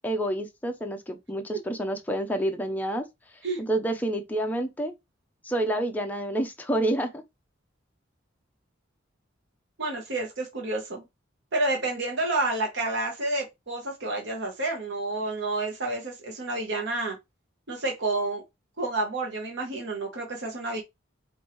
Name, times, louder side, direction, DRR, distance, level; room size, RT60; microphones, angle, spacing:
voice 1, 0.0-3.0 3.7-4.9 5.4-7.2, right 1 dB, 10° left, 0.6 m, -28 dB
voice 2, 9.8-11.0 11.5-17.2 17.7-18.4 18.8-20.8, right 2 dB, 60° right, 1.1 m, -29 dB
5.0 x 2.6 x 3.0 m
head